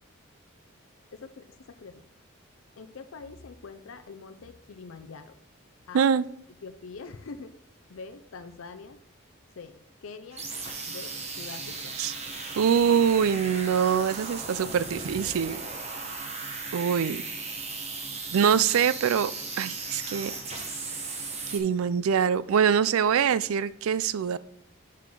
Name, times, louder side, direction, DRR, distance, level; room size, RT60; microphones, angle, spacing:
voice 1, 1.1-2.0 2.8-5.3 5.9-6.1 6.6-7.6 7.9-9.0 9.6-10.5 10.9-11.9, left 4 dB, 75° left, 8 dB, 0.5 m, -44 dB
sound 1, 10.3-21.6, right 3 dB, 30° right, 1.0 m, -36 dB
voice 2, 12.6-15.6 16.7-17.2 18.3-19.3 19.6-20.3 21.5-24.4, right 7 dB, 85° right, 17 dB, 0.4 m, -24 dB
7.6 x 5.7 x 3.8 m, 0.70 s
head